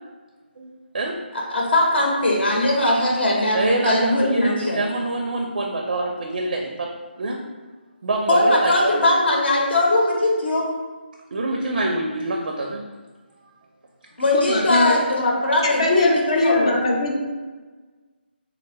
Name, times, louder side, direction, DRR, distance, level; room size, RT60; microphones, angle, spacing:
voice 1, 0.6-1.2 3.5-6.9 7.2-7.4 8.0-8.9 11.3-12.9, right 2 dB, 60° right, 1 dB, 0.4 m, -25 dB
voice 2, 1.5-4.8 8.3-10.7 14.2-16.7, left 1 dB, 70° left, -2 dB, 0.8 m, -20 dB
voice 3, 14.3-14.9 15.6-17.2, left 2 dB, 35° left, 0 dB, 0.3 m, -20 dB
3.6 x 2.2 x 3.3 m, 1.3 s
hypercardioid pair, 170°, 6 cm